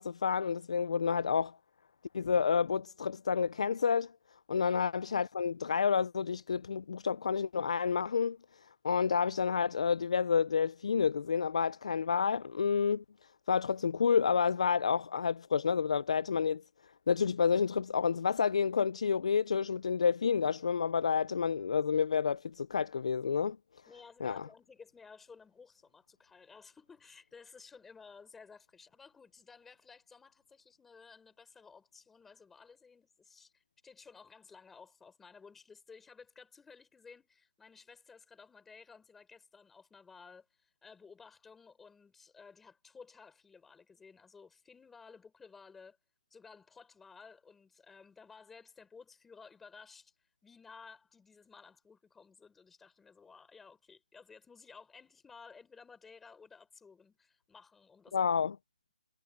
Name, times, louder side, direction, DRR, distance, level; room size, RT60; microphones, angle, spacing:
voice 1, 0.0-1.6 2.1-4.1 4.5-8.4 8.8-13.0 13.5-16.6 17.1-23.6 24.2-24.4 58.1-58.5, left 6 dB, 45° left, 0.4 m, -29 dB
voice 2, 23.9-46.0 46.3-50.1 50.4-58.3, left 5 dB, 5° left, 5.5 m, -56 dB
hypercardioid pair, 175°, 5 cm